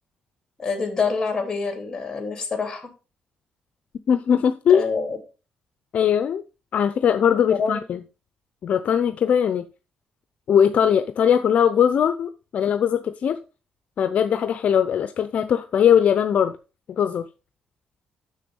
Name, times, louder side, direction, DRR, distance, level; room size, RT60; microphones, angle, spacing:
voice 1, 0.6-2.9 4.7-5.2 7.5-7.8, left 4 dB, 20° left, 2.9 m, -26 dB
voice 2, 4.1-4.8 5.9-6.4 6.7-8.0 8.6-9.7 10.5-13.4 14.0-16.6 16.9-17.2, left 8 dB, 50° left, 0.6 m, -20 dB
6.7 x 6.6 x 5.4 m
cardioid pair, 140°, 3 cm